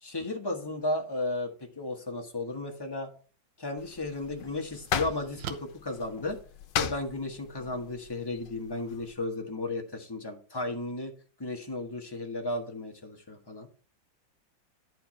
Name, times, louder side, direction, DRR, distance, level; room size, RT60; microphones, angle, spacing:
voice 1, 0.0-3.1 3.6-6.4 6.8-11.1 11.4-13.7, left 2 dB, 15° left, 2 dB, 1.1 m, -34 dB
sound 1, 3.2-3.3 3.9-6.9, right 8 dB, 75° right, 1.4 m, -46 dB
sound 2, 3.8-9.1, left 9 dB, 80° left, 1.3 m, -37 dB
11.0 x 4.6 x 4.5 m, 0.40 s
omnidirectional pair, 2.0 m